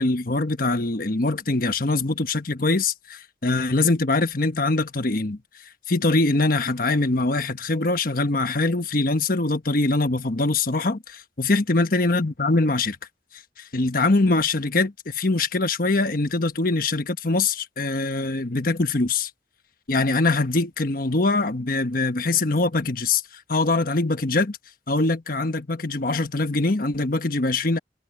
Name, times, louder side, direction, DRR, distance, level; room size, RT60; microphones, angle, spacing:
voice 1, 0.0-5.4 5.9-13.0 13.7-19.3 19.9-23.2 23.5-24.6 24.9-27.8, left 3 dB, 55° left, 1.3 m, -23 dB
head